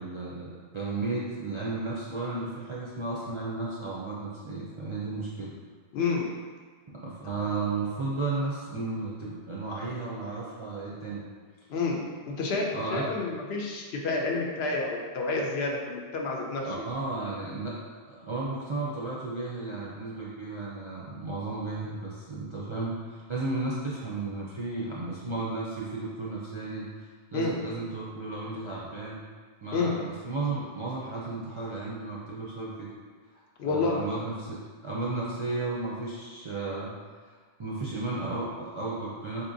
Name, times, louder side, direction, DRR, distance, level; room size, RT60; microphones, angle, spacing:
voice 1, 0.0-5.6 6.9-11.2 12.7-13.1 16.6-17.8 18.1-26.9 27.3-29.2 29.6-32.9 33.6-37.0 37.3-37.4 37.6-39.5, right 3 dB, 50° right, -7 dB, 0.3 m, -34 dB
voice 2, 5.9-6.3 11.7-16.7 27.3-27.5 29.7-30.0 33.6-34.0, left 3 dB, 80° left, -1 dB, 0.8 m, -29 dB
4.1 x 2.7 x 2.6 m, 1.5 s
omnidirectional pair, 1.1 m